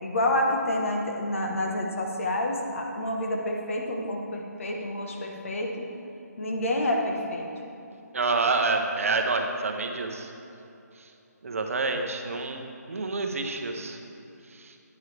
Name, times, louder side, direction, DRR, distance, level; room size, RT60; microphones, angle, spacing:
voice 1, 0.0-5.9 6.4-7.5, left 1 dB, 50° left, 1 dB, 1.3 m, -28 dB
voice 2, 8.1-10.3 11.4-14.0 14.5-14.7, right 3 dB, 55° right, 4 dB, 0.9 m, -28 dB
9.7 x 9.4 x 3.4 m, 2.8 s
hypercardioid pair, 170°, 9 cm